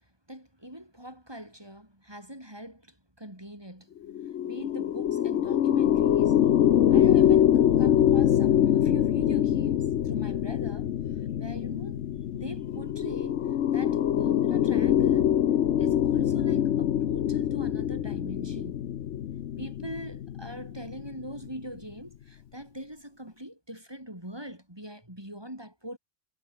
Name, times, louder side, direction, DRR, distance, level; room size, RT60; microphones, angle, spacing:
voice 1, 0.3-4.0 4.4-6.4 6.9-7.5 7.8-10.9 11.2-12.1 12.3-13.4 13.7-15.3 15.8-18.9 19.6-26.0, equal, 20° right, 5.7 m, -42 dB
sound 1, 4.0-21.5, left 10 dB, 80° left, 1.1 m, -24 dB
omnidirectional pair, 1.2 m